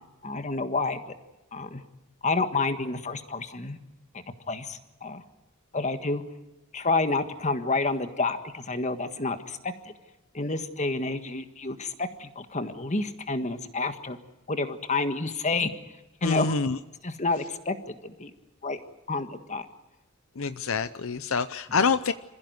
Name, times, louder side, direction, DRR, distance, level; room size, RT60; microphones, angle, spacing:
voice 1, 0.2-1.0 1.5-1.8 2.2-3.8 4.5-5.2 5.7-6.2 6.7-9.9 10.3-14.2 14.5-15.7 16.2-16.6 17.0-18.3 18.6-18.8 19.1-19.7 21.7-21.8, left 3 dB, 35° left, 9 dB, 1.6 m, -29 dB
voice 2, 16.2-16.8 20.4-22.1, left 5 dB, 70° left, 13 dB, 0.7 m, -26 dB
26.5 x 15.5 x 9.4 m, 1.0 s
head